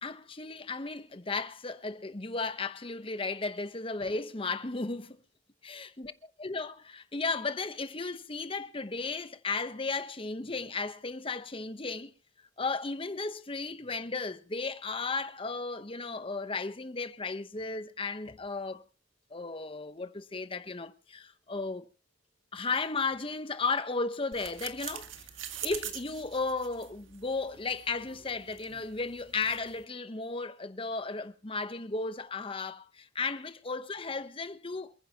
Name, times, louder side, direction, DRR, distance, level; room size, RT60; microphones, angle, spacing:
voice 1, 0.0-5.2 5.7-6.1 6.4-12.1 12.6-18.8 19.3-21.9 22.5-25.1 25.6-34.9, left 3 dB, 30° left, 1.0 m, -35 dB
sound 1, 24.3-29.8, right 10 dB, 85° right, 1.9 m, -44 dB
27.5 x 9.9 x 2.9 m
head